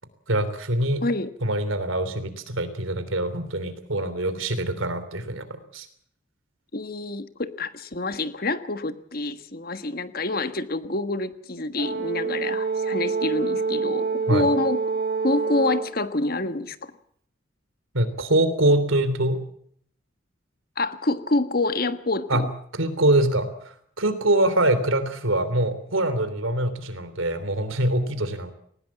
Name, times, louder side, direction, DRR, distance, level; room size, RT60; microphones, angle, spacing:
voice 1, 0.3-1.0 1.4-5.9 14.3-14.5 17.9-19.4 22.3-22.4 22.7-23.5 24.0-28.5, right 1 dB, 90° right, 12 dB, 3.3 m, -24 dB
voice 2, 6.7-14.8 15.2-16.9 20.8-22.5, left 2 dB, 50° left, 11 dB, 1.5 m, -27 dB
Brass instrument, 11.8-16.0, right 4 dB, 50° right, 2.1 m, -26 dB
19.5 x 19.5 x 7.4 m, 0.64 s
head